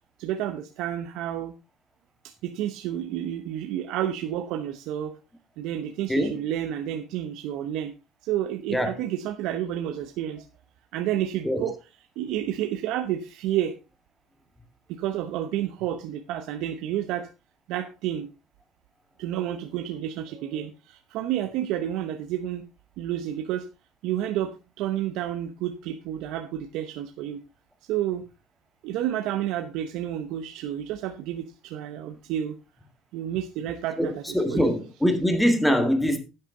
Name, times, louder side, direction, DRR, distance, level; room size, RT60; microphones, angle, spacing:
voice 1, 0.2-1.5 2.2-5.1 5.6-7.9 8.2-10.4 10.9-11.7 12.2-13.7 14.9-17.3 17.7-18.3 19.2-22.7 23.0-23.7 24.0-27.4 27.9-28.3 28.8-32.6 33.1-34.7, right 11 dB, 75° right, 0.9 m, -30 dB
voice 2, 34.0-36.2, equal, 5° left, 1.9 m, -23 dB
10.5 x 8.3 x 3.8 m
cardioid pair, 120°, 0 cm